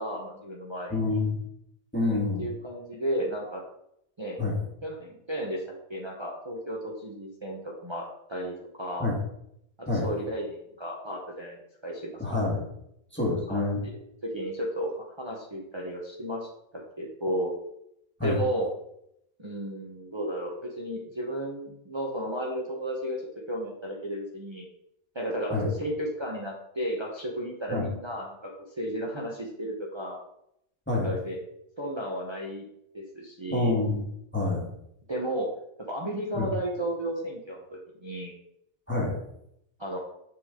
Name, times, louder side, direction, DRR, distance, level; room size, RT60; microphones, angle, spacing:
voice 1, 0.0-1.0 2.0-3.6 4.2-4.4 4.8-5.6 5.9-9.1 9.8-12.4 13.5-13.6 14.2-17.5 18.2-18.7 19.4-23.2 23.5-24.7 25.1-28.5 28.8-30.2 30.9-31.4 31.8-32.7 32.9-33.7 35.1-35.5 35.9-38.3 39.8-40.0, right 1 dB, 25° right, -3 dB, 0.9 m, -33 dB
voice 2, 0.9-1.4 1.9-2.5 4.4-4.6 9.0-9.2 9.9-10.1 12.2-12.6 13.1-13.8 18.2-18.4 25.5-25.7 27.7-27.9 30.9-31.1 33.5-34.0 34.3-34.7 36.3-36.5 38.9-39.2, left 2 dB, 10° left, -3 dB, 1.3 m, -27 dB
6.0 x 5.0 x 3.7 m, 0.77 s
omnidirectional pair, 1.2 m